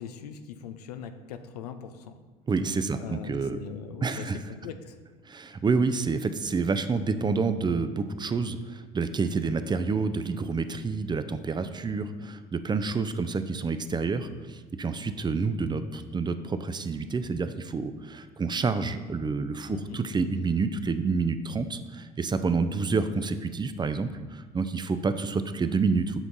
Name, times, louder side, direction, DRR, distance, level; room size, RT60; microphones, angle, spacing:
voice 1, 0.0-2.1 3.0-5.0 19.7-20.0, left 7 dB, 85° left, 9 dB, 0.5 m, -40 dB
voice 2, 2.5-3.6 4.0-4.4 5.3-26.2, right 4 dB, 20° right, 10 dB, 0.5 m, -28 dB
5.9 x 5.9 x 4.0 m, 1.4 s
hypercardioid pair, 65°, 20 cm